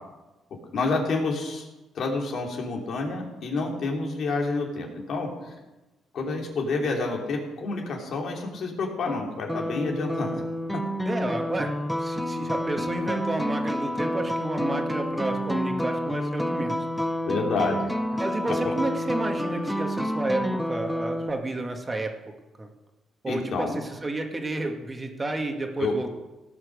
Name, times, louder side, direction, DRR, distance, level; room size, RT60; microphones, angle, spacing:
voice 1, 0.7-1.7 1.9-5.6 6.1-10.4 10.7-10.8 17.2-17.9 18.5-18.7 23.3-23.8 25.8-25.9, left 3 dB, 60° left, 0 dB, 3.1 m, -29 dB
sound 1, 9.1-21.3, equal, 5° left, 0.8 m, -29 dB
voice 2, 11.1-16.9 18.2-22.1 22.6-22.7 23.2-26.1, right 2 dB, 25° right, 4 dB, 1.9 m, -31 dB
18.0 x 6.2 x 6.5 m, 1.1 s
cardioid pair, 90°, 0 cm